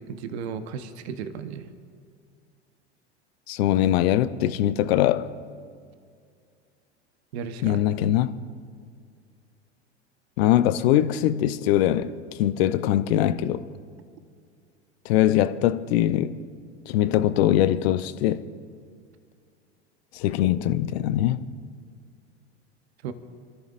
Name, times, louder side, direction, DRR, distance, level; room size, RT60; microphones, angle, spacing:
voice 1, 0.1-1.7 7.3-7.8 23.0-23.1, right 6 dB, 70° right, 1.0 m, -34 dB
voice 2, 3.5-5.3 7.6-8.3 10.4-13.6 15.0-16.4 16.9-18.4 20.1-21.4, left 12 dB, 60° left, 0.7 m, -22 dB
26.5 x 14.0 x 2.5 m
hypercardioid pair, 85°, 34 cm